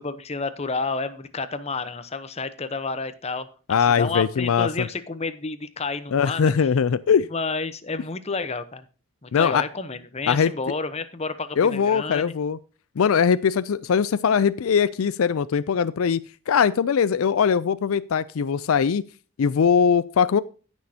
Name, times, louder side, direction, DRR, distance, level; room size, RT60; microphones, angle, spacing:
voice 1, 0.0-6.7 7.3-8.9 9.2-12.3, left 4 dB, 30° left, 12 dB, 0.8 m, -30 dB
voice 2, 3.7-4.9 6.1-7.3 9.3-9.6 10.3-10.5 11.6-12.6 13.0-19.0 19.4-20.4, left 6 dB, 75° left, 16 dB, 0.4 m, -21 dB
16.0 x 6.3 x 2.8 m, 0.36 s
head